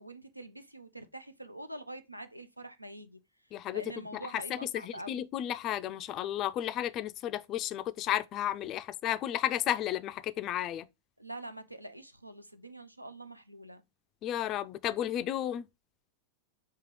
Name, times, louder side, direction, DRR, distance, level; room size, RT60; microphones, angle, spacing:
voice 1, 0.0-3.2 3.7-5.2 11.2-13.8, right 1 dB, 85° right, 0.4 m, -45 dB
voice 2, 3.5-3.8 4.1-10.9 14.2-15.7, left 12 dB, 35° left, 0.3 m, -33 dB
3.6 x 2.8 x 4.7 m
figure-of-eight pair, 90°, 0 cm